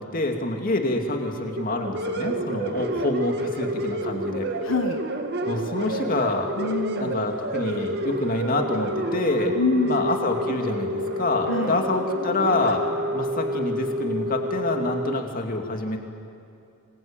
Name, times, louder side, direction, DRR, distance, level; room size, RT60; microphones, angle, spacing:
voice 1, 0.0-4.5 5.4-6.6 7.0-9.5 9.9-12.8 13.1-16.0, left 2 dB, 40° left, 3 dB, 2.7 m, -27 dB
sound 1, 1.5-15.2, right 1 dB, 50° right, 2.0 m, -29 dB
voice 2, 4.6-5.0 6.6-7.2 9.5-10.1 11.5-11.8, left 3 dB, 70° left, 5 dB, 1.4 m, -25 dB
26.5 x 21.5 x 9.0 m, 2.6 s
head